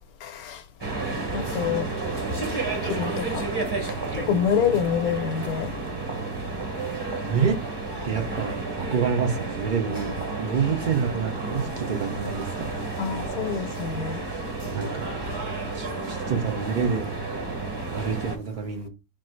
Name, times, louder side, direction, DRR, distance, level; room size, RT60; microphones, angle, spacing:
voice 1, 0.2-0.6 1.3-1.9 2.9-3.4 4.3-5.7 13.0-14.2, left 8 dB, 70° left, 1.2 m, -26 dB
sound 1, 0.8-18.4, right 3 dB, 25° right, 0.6 m, -31 dB
voice 2, 7.1-7.6 8.0-12.7 14.7-15.1 15.7-17.1 17.9-18.9, right 6 dB, 85° right, 0.4 m, -27 dB
4.1 x 2.5 x 4.4 m
omnidirectional pair, 1.6 m